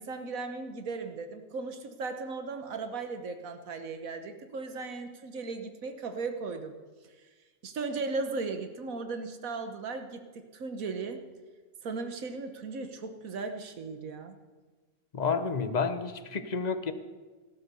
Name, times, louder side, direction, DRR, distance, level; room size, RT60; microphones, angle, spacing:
voice 1, 0.0-6.7 7.6-11.2 11.8-14.4, right 4 dB, 80° right, 7 dB, 1.6 m, -37 dB
voice 2, 15.1-16.9, left 5 dB, 35° left, 10 dB, 0.9 m, -30 dB
15.0 x 12.5 x 6.8 m, 1.3 s
omnidirectional pair, 1.4 m